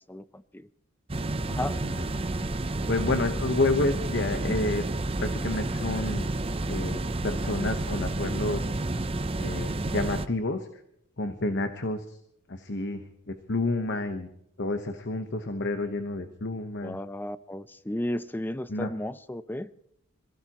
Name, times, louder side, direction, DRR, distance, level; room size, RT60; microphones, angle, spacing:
voice 1, 0.1-0.7 1.5-1.8 16.8-19.7, left 1 dB, 10° left, 15 dB, 0.5 m, -34 dB
sound 1, 1.1-10.3, right 2 dB, 25° right, 0.7 m, -30 dB
voice 2, 2.6-4.8 5.2-6.3 6.7-8.7 9.4-10.7 11.2-12.2 12.5-14.3 14.6-17.0 18.7-18.9, left 2 dB, 55° left, 7 dB, 1.2 m, -29 dB
27.0 x 16.0 x 3.0 m, 0.74 s
head